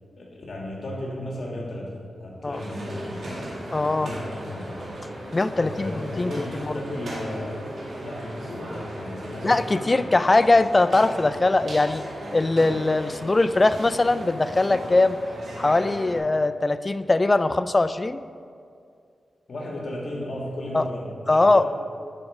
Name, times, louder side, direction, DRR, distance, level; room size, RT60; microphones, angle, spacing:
voice 1, 0.2-3.5 3.8-4.8 5.6-7.7 8.0-9.9 19.5-21.7, left 1 dB, 60° left, -2 dB, 2.0 m, -35 dB
sound 1, 2.5-16.2, right 1 dB, 75° right, 2.2 m, -37 dB
voice 2, 3.7-4.1 5.3-6.3 6.6-6.8 9.4-12.0 12.3-15.2 15.6-18.2 20.7-20.9 21.3-21.6, left 2 dB, 30° left, 13 dB, 0.3 m, -21 dB
11.0 x 5.3 x 4.9 m, 2.3 s
cardioid pair, 65°, 0 cm